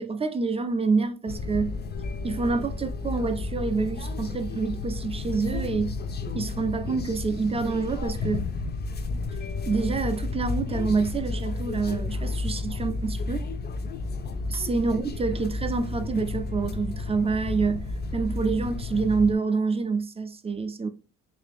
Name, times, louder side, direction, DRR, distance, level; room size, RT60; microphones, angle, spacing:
voice 1, 0.0-1.7 2.2-6.0 6.3-8.5 9.7-13.5 14.5-17.9 18.1-20.9, right 4 dB, 20° right, 0.4 m, -27 dB
sound 1, 1.3-19.3, left 3 dB, 35° left, 0.5 m, -32 dB
3.3 x 2.6 x 3.4 m
cardioid pair, 90°, 30 cm